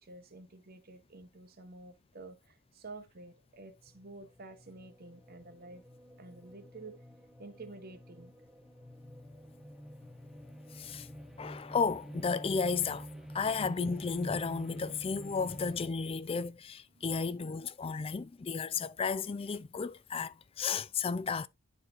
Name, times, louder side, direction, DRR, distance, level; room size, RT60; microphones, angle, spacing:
voice 1, 0.0-5.8 6.2-7.0 7.4-8.3 16.9-17.4, right 3 dB, 45° right, 0.8 m, -50 dB
sound 1, 4.0-15.9, equal, ahead, 0.7 m, -48 dB
voice 2, 10.7-11.1 11.4-13.1 13.3-21.5, left 5 dB, 25° left, 0.3 m, -33 dB
11.0 x 4.2 x 2.4 m
head